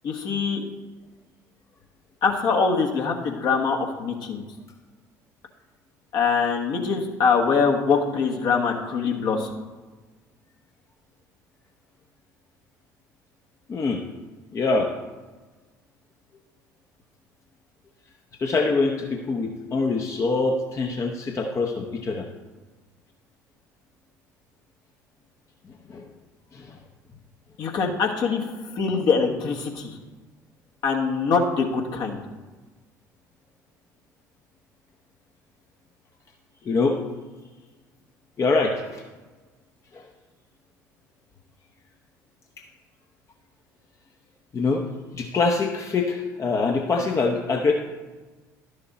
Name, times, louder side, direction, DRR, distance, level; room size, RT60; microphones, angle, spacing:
voice 1, 0.0-0.6 2.2-4.4 6.1-9.5 27.6-28.5 28.7-29.9 30.8-32.2, left 5 dB, 50° left, 2 dB, 1.4 m, -23 dB
voice 2, 13.7-14.0 14.5-14.9 18.4-22.3 25.9-26.0 26.5-26.8 36.6-37.0 38.4-39.0 39.9-40.1 44.5-44.8 45.1-47.7, left 3 dB, 30° left, 2 dB, 0.9 m, -24 dB
11.5 x 6.6 x 4.1 m, 1.3 s
figure-of-eight pair, 60°, 10 cm